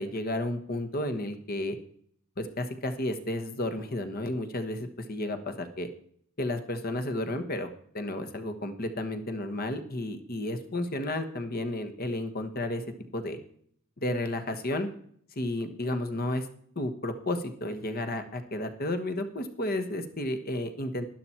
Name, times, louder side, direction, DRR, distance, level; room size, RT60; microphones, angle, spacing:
voice 1, 0.0-1.8 2.4-5.9 6.4-12.8 13.1-13.4 14.0-14.9 15.4-16.5 16.7-21.1, left 1 dB, 45° left, 8 dB, 1.3 m, -32 dB
12.0 x 11.0 x 4.5 m, 0.63 s
head